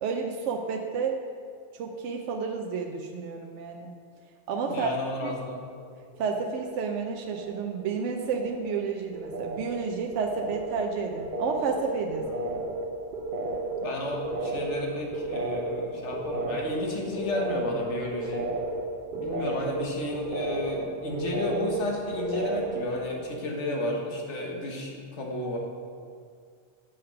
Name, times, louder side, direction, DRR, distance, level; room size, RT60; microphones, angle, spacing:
voice 1, 0.0-1.2 1.7-4.0 4.5-5.3 6.2-12.3, right 5 dB, 80° right, 2 dB, 0.9 m, -31 dB
voice 2, 4.7-5.6 12.2-12.5 13.8-18.5 19.1-25.6, left 2 dB, 75° left, -1 dB, 1.5 m, -32 dB
sound 1, 5.4-5.8 6.1-6.9 7.1-22.9, right 2 dB, 50° right, 0.8 m, -33 dB
7.1 x 5.0 x 5.7 m, 2.1 s
omnidirectional pair, 1.2 m